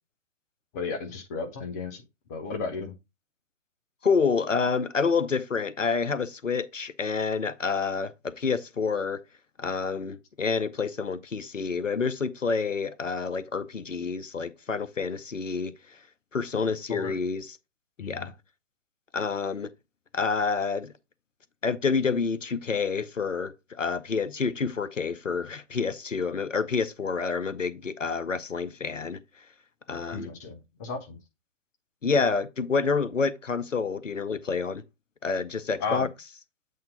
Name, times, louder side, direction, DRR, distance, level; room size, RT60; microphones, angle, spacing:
voice 1, 0.7-2.0 2.3-2.9 16.9-17.2 18.0-18.3 30.1-31.2 35.8-36.1, left 4 dB, 15° left, 0.6 m, -34 dB
voice 2, 4.0-9.2 9.6-15.7 16.3-17.6 18.1-18.3 19.1-19.7 20.1-20.9 21.6-29.2 29.9-30.3 32.0-34.8 35.2-36.1, left 5 dB, 85° left, 0.8 m, -28 dB
7.9 x 2.7 x 5.2 m
figure-of-eight pair, 125°, 37 cm